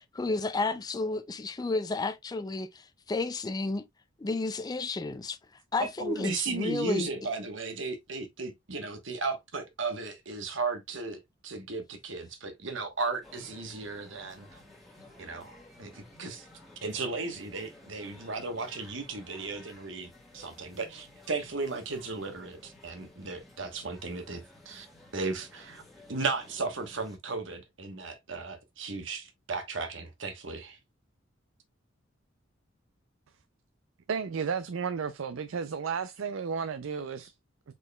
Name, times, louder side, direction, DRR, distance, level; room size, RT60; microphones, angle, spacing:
voice 1, 0.2-3.8 4.2-5.4 5.7-7.1, left 3 dB, 20° left, 0.4 m, -32 dB
voice 2, 5.8-14.6 15.2-16.5 16.8-24.9 25.1-25.8 26.1-30.8, right 3 dB, 70° right, 1.2 m, -35 dB
sound 1, 13.2-27.2, left 2 dB, ahead, 1.4 m, -54 dB
voice 3, 34.1-37.3, right 6 dB, 90° right, 0.5 m, -33 dB
5.0 x 4.5 x 2.2 m
head